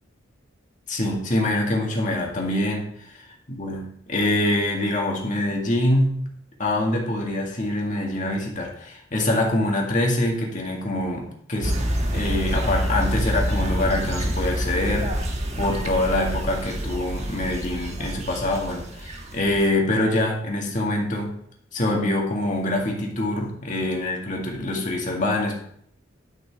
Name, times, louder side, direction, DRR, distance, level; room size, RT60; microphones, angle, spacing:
voice 1, 0.9-3.1 3.5-6.2 6.6-11.8 12.1-15.1 15.6-21.3 21.7-25.5, left 1 dB, 40° left, 0 dB, 1.9 m, -25 dB
sound 1, 11.6-19.7, equal, 35° right, 1.2 m, -27 dB
11.0 x 6.0 x 3.5 m, 0.67 s
head